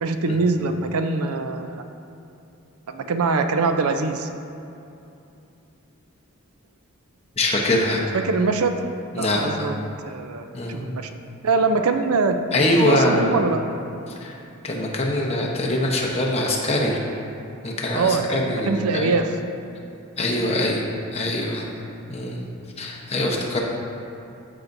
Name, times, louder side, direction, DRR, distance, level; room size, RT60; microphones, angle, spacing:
voice 1, 0.0-1.8 2.9-4.3 8.1-8.8 9.1-11.1 11.4-13.6 17.9-19.4 20.5-20.8, right 4 dB, 85° right, 7 dB, 0.5 m, -23 dB
voice 2, 7.4-8.0 9.1-9.7 10.5-11.0 12.5-13.4 14.1-17.0 17.6-19.1 20.2-20.8 21.1-21.7 22.1-22.5 22.8-23.6, left 1 dB, 30° left, -1 dB, 0.9 m, -23 dB
13.5 x 5.9 x 2.6 m, 2.8 s
head